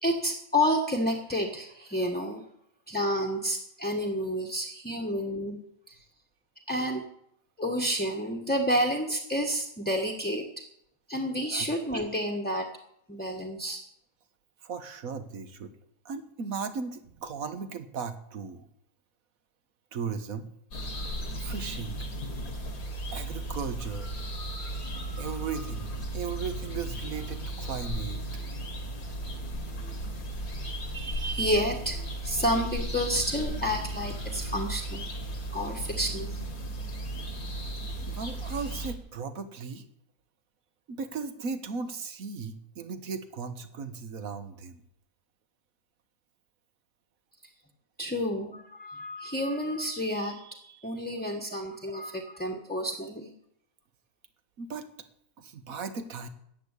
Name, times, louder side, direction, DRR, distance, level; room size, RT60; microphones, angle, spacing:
voice 1, 0.0-2.4 2.9-5.6 5.9-6.0 6.7-7.0 7.6-10.6 11.1-12.7 13.1-13.8 30.9-35.1 35.5-36.4 48.0-53.3, equal, 5° left, 3 dB, 1.3 m, -30 dB
voice 2, 14.6-15.7 16.1-18.7 19.9-20.5 21.4-22.1 23.1-24.1 25.2-28.4 38.0-39.9 40.9-44.8 52.1-52.2 54.6-54.9 55.4-56.3, right 5 dB, 70° right, 10 dB, 1.7 m, -37 dB
sound 1, 20.7-38.9, right 1 dB, 75° left, 2.5 m, -35 dB
14.0 x 10.0 x 8.3 m, 0.73 s
omnidirectional pair, 1.5 m